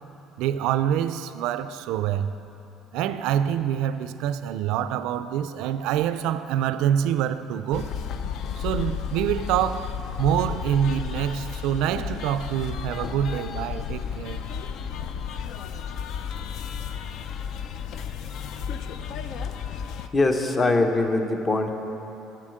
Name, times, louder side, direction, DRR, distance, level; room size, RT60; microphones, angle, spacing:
voice 1, 0.4-2.3 2.9-7.9 8.6-14.4, right 10 dB, 75° right, 12 dB, 0.3 m, -26 dB
sound 1, 7.7-20.1, left 7 dB, 65° left, 0.4 m, -33 dB
voice 2, 20.1-21.7, left 2 dB, 30° left, 5 dB, 0.8 m, -22 dB
7.4 x 7.1 x 6.4 m, 3.0 s
supercardioid pair, 75°, 0 cm